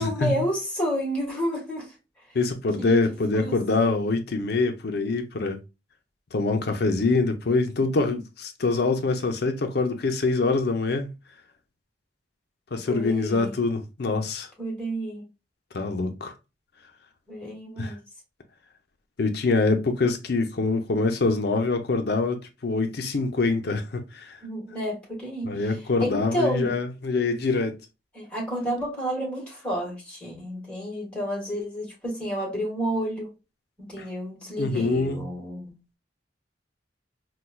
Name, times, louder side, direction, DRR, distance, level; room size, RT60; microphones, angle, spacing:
voice 1, 0.0-1.9 2.8-3.0 3.3-3.6 12.9-13.5 14.6-15.2 17.3-18.0 24.4-25.5 26.0-26.7 28.1-33.3 33.8-35.8, equal, 5° left, 1.5 m, -30 dB
voice 2, 2.3-5.6 6.3-11.1 12.7-14.5 15.7-16.3 17.8-17.9 19.2-24.4 25.4-27.8 34.0-34.1 34.6-35.2, left 3 dB, 60° left, 0.6 m, -25 dB
4.3 x 2.2 x 2.2 m
head